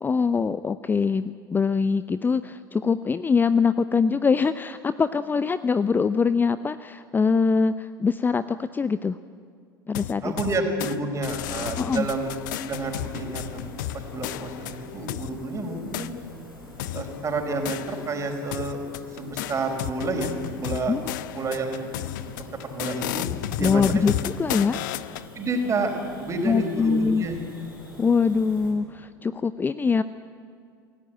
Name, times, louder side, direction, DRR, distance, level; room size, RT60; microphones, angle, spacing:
voice 1, 0.0-9.2 9.9-10.3 11.8-12.1 20.9-21.0 23.6-24.1 24.4-24.8 26.4-27.3 28.0-30.0, left 5 dB, 15° left, 14 dB, 0.6 m, -23 dB
sound 1, 9.9-11.0 11.2-15.3 15.9-16.1 16.8-18.2 18.5-25.3, left 14 dB, 60° left, 0.9 m, -33 dB
voice 2, 10.2-12.3 12.6-13.7 14.1-16.2 16.9-18.8 19.1-20.3 20.6-20.9 21.3-21.9 22.6-23.2 23.6-24.0 25.3-27.4, right 2 dB, 25° right, 4 dB, 4.6 m, -29 dB
sound 2, 11.9-28.7, left 1 dB, 85° left, 6.0 m, -45 dB
27.5 x 17.0 x 9.1 m, 2.2 s
figure-of-eight pair, 75°, 11 cm